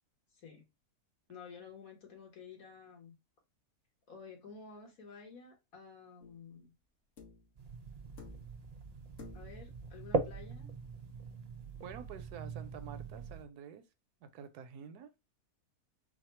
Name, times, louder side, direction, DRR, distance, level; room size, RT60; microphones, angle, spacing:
voice 1, 0.3-0.7 1.3-3.2 4.1-6.7 9.3-10.7, left 5 dB, 60° left, 1.9 m, -52 dB
sound 1, 6.2-6.5 7.2-7.6 8.2-8.7 9.2-9.7 11.1-11.2, left 3 dB, 45° left, 1.5 m, -52 dB
sound 2, 7.6-13.4, right 3 dB, 60° right, 0.4 m, -41 dB
voice 2, 11.8-13.8 14.2-15.1, right 7 dB, 80° right, 1.2 m, -48 dB
4.2 x 2.3 x 4.3 m
omnidirectional pair, 1.7 m